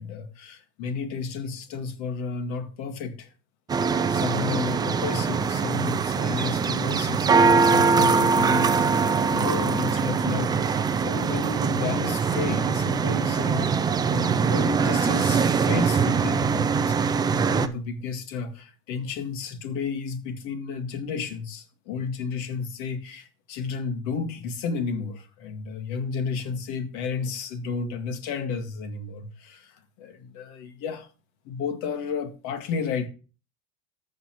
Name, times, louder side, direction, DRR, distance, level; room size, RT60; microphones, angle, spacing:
voice 1, 0.0-3.3 4.1-31.1 31.5-33.1, left 5 dB, 60° left, 2.0 m, -32 dB
sound 1, 3.7-17.7, right 5 dB, 10° right, 0.3 m, -23 dB
14.5 x 5.6 x 3.0 m
supercardioid pair, 135°, 35 cm